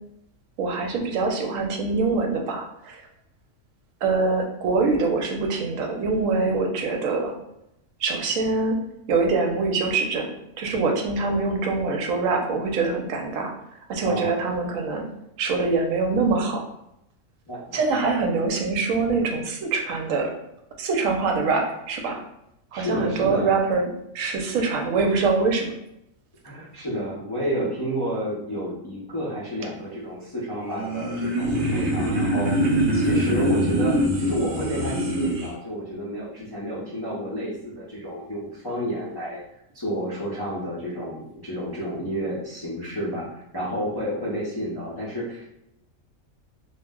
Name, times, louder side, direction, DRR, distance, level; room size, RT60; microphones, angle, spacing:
voice 1, 0.6-3.0 4.0-7.3 8.0-8.8 9.1-10.3 10.6-13.5 13.9-15.0 15.4-16.6 17.7-20.3 20.8-22.2 22.7-23.9 24.1-25.7, right 4 dB, 80° right, 2 dB, 1.0 m, -24 dB
voice 2, 14.0-14.3 17.5-17.8 18.2-18.3 22.7-23.5 26.4-39.4 39.7-43.3 43.5-45.5, equal, 35° left, -8 dB, 0.4 m, -30 dB
sound 1, 30.6-35.5, right 1 dB, 55° right, 0.6 m, -23 dB
2.4 x 2.0 x 3.4 m, 0.82 s
omnidirectional pair, 1.4 m